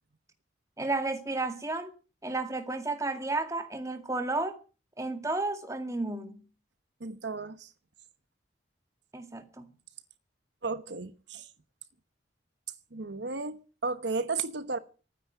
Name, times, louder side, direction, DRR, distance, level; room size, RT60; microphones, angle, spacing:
voice 1, 0.8-1.9 2.2-4.6 5.0-6.3 9.1-9.7, right 2 dB, 15° right, 2.0 m, -32 dB
voice 2, 7.0-7.7 10.6-11.5 12.9-14.8, right 4 dB, 70° right, 1.1 m, -34 dB
12.5 x 9.6 x 9.4 m
head